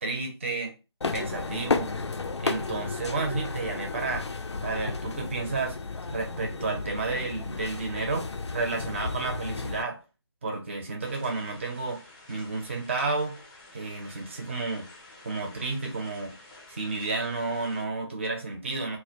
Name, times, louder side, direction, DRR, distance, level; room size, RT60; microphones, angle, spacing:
voice 1, 0.0-0.7 1.1-1.9 2.4-4.3 4.6-5.8 6.1-10.0 10.4-12.0 12.3-13.4 13.7-14.9 15.2-16.3 16.7-19.0, right 3 dB, 25° right, 0.5 m, -31 dB
sound 1, 1.0-9.8, left 4 dB, 85° left, 0.4 m, -33 dB
sound 2, 11.0-17.8, left 2 dB, 20° left, 0.5 m, -50 dB
2.1 x 2.1 x 2.7 m
figure-of-eight pair, 155°, 14 cm